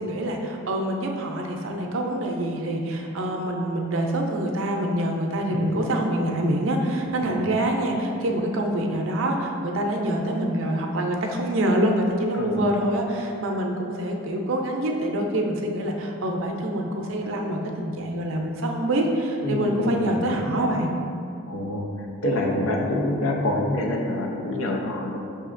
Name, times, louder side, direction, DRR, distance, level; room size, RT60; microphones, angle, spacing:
voice 1, 0.0-20.9, right 1 dB, 75° right, 2 dB, 0.5 m, -25 dB
voice 2, 5.5-5.8 7.2-7.5 12.3-12.6 19.4-20.4 21.5-25.2, left 1 dB, 90° left, 0 dB, 0.5 m, -27 dB
5.9 x 2.7 x 2.5 m, 2.6 s
head